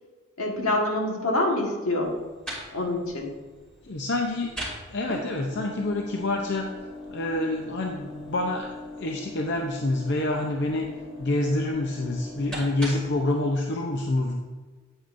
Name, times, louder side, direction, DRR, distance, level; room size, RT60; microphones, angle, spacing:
voice 1, 0.4-2.2 2.7-3.3, left 1 dB, 75° left, 0 dB, 1.6 m, -26 dB
sound 1, 2.0-13.2, left 1 dB, 5° left, 2.6 m, -40 dB
voice 2, 3.8-4.5 4.9-6.7 7.1-8.7 9.0-10.9 11.2-14.4, left 2 dB, 55° left, 2 dB, 0.6 m, -27 dB
8.9 x 8.7 x 2.6 m, 1.4 s
head